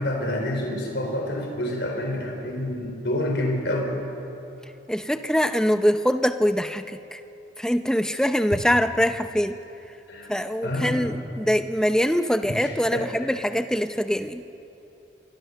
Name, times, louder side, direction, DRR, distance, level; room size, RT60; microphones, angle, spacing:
voice 1, 0.0-3.9 10.1-10.3 10.6-11.1 12.6-13.3, left 1 dB, 70° left, 2 dB, 4.3 m, -28 dB
voice 2, 4.9-7.2 7.6-9.6 10.3-14.4, equal, 5° left, 9 dB, 0.7 m, -23 dB
25.5 x 24.5 x 6.7 m, 3.0 s
head